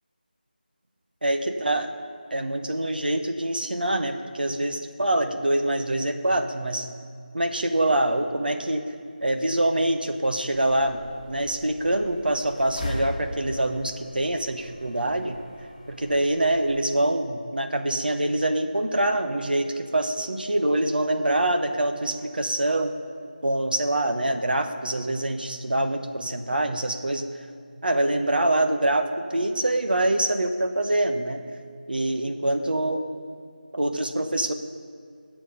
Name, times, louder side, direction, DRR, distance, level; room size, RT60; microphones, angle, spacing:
voice 1, 1.2-1.9 2.3-6.9 7.3-8.8 9.2-11.0 11.3-15.4 15.9-22.9 23.4-27.3 27.8-31.4 31.9-33.0 33.7-34.5, right 1 dB, 70° right, 6 dB, 1.3 m, -25 dB
sound 1, 10.5-16.7, left 1 dB, 5° left, 4.0 m, -39 dB
19.0 x 7.8 x 5.3 m, 2.2 s
figure-of-eight pair, 170°, 5 cm